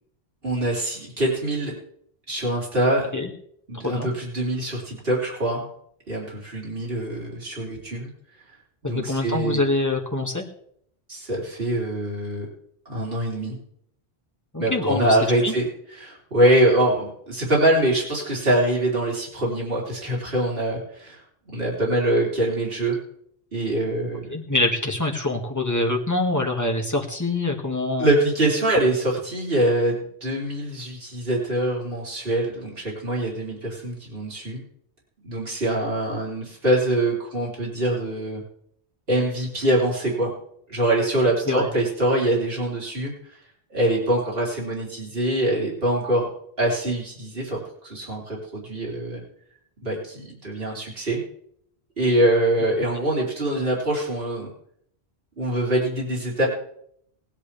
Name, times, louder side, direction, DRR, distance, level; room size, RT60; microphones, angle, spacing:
voice 1, 0.4-1.7 2.3-3.1 3.7-5.7 6.1-8.1 8.8-9.6 11.1-12.5 12.9-13.6 14.6-15.7 16.0-21.2 21.5-23.0 23.5-24.3 28.0-34.6 35.2-38.4 39.1-40.3 40.7-43.1 43.7-46.3 46.6-49.2 49.8-51.2 52.0-54.5 55.4-56.5, right 1 dB, 60° right, -4 dB, 4.0 m, -24 dB
voice 2, 8.8-10.4 14.5-15.6 24.3-28.1 41.5-41.7, left 2 dB, 15° left, 0 dB, 1.9 m, -25 dB
19.5 x 10.5 x 3.4 m, 0.70 s
omnidirectional pair, 1.1 m